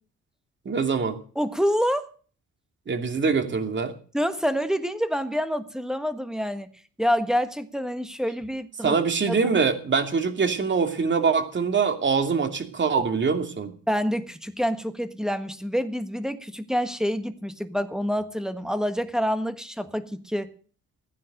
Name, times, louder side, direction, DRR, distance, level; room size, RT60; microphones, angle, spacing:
voice 1, 0.6-1.2 2.9-3.9 8.8-13.8, right 5 dB, 40° right, 6 dB, 2.6 m, -24 dB
voice 2, 1.3-2.1 4.1-6.7 7.0-9.0 9.3-9.4 13.9-20.5, equal, ahead, 10 dB, 1.5 m, -27 dB
15.5 x 10.0 x 6.6 m, 0.42 s
cardioid pair, 90°, 30 cm